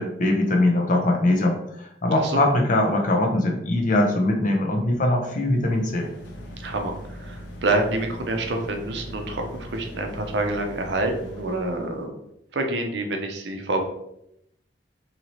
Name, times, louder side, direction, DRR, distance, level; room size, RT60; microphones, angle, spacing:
voice 1, 0.0-6.1, left 1 dB, 45° left, 1 dB, 0.6 m, -22 dB
voice 2, 2.1-2.4 6.6-12.1 12.5-13.8, right 2 dB, 70° right, 4 dB, 0.5 m, -27 dB
sound 1, 5.4-12.0, equal, 85° left, 0.6 m, -40 dB
2.8 x 2.7 x 3.0 m, 0.79 s
head